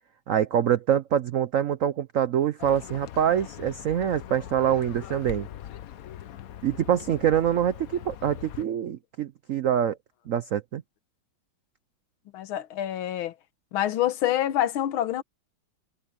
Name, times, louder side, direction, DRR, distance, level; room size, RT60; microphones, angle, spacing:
voice 1, 0.3-5.5 6.6-10.0 10.3-10.8, right 9 dB, 80° right, 0.7 m, -25 dB
Livestock farm animals working animals, 2.6-8.7, left 11 dB, 65° left, 0.9 m, -41 dB
voice 2, 12.3-13.3 13.7-15.2, left 12 dB, 85° left, 1.7 m, -26 dB
omnidirectional pair, 2.2 m